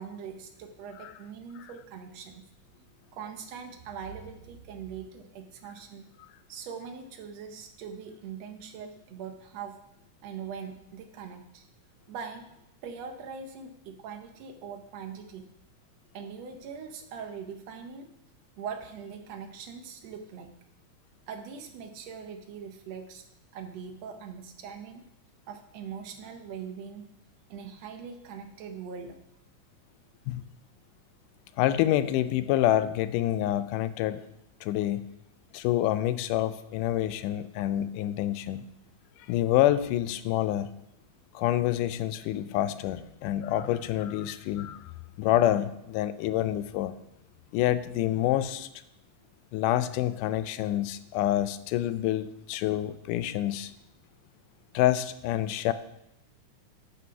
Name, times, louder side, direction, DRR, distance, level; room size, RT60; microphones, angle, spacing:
voice 1, 0.0-2.4 3.1-6.1 6.5-9.8 10.2-11.7 12.1-12.5 12.8-15.4 16.1-18.1 18.6-20.5 21.3-23.3 23.5-25.1 25.5-27.1 27.5-29.2, right 6 dB, 70° right, 5 dB, 1.6 m, -41 dB
voice 2, 31.6-34.2 34.6-35.1 35.5-38.6 39.3-40.7 41.4-44.8 45.2-46.9 47.5-48.7 49.5-53.7 54.7-55.7, left 13 dB, 90° left, 13 dB, 2.1 m, -27 dB
11.0 x 4.1 x 5.5 m, 0.83 s
omnidirectional pair, 3.6 m